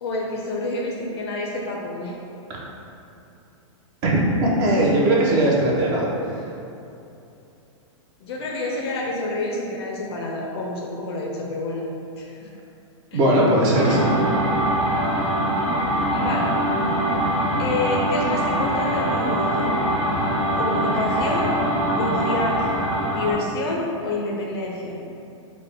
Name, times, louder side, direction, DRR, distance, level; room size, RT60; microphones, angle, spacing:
voice 1, 0.0-2.2 8.2-11.9 12.2-12.5 13.1-13.2 15.1-15.4 16.1-16.5 17.6-19.8 20.5-21.5 22.0-22.8 23.1-25.0, left 2 dB, 50° left, -1 dB, 0.4 m, -28 dB
voice 2, 4.0-6.1 13.1-14.1, right 1 dB, 25° right, -3 dB, 0.4 m, -19 dB
sound 1, 13.7-23.3, right 1 dB, 65° right, 1.3 m, -23 dB
3.3 x 2.1 x 3.2 m, 2.7 s
hypercardioid pair, 160°, 17 cm